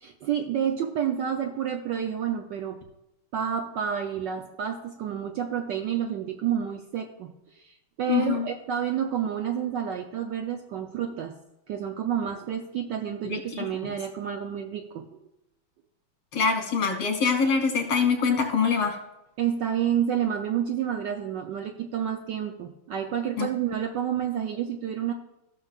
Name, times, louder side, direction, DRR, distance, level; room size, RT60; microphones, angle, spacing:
voice 1, 0.0-2.8 3.3-11.3 11.7-15.1 19.4-25.1, right 9 dB, 65° right, 4 dB, 1.2 m, -29 dB
voice 2, 8.1-8.5 13.2-13.9 16.3-19.0 23.4-23.5, left 5 dB, 75° left, 3 dB, 2.9 m, -24 dB
15.5 x 6.7 x 2.4 m, 0.91 s
omnidirectional pair, 2.3 m